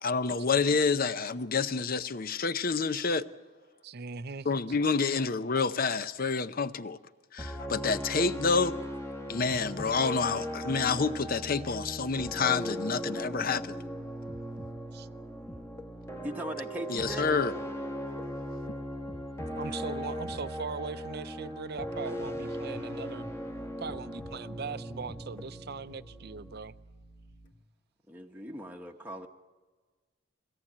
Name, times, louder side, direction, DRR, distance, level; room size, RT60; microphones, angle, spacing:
voice 1, 0.0-3.3 4.4-7.0 7.3-8.8 9.3-13.8 16.9-17.5, left 4 dB, 45° left, 0.7 m, -28 dB
voice 2, 3.8-4.5 14.9-15.1 19.6-23.3 23.8-26.8, right 4 dB, 50° right, 0.6 m, -40 dB
sound 1, 7.4-26.6, equal, 15° left, 1.3 m, -38 dB
voice 3, 16.2-17.3 28.1-29.3, equal, 10° right, 1.0 m, -39 dB
sound 2, 22.2-27.5, equal, 60° left, 2.9 m, -52 dB
23.0 x 17.5 x 8.7 m
head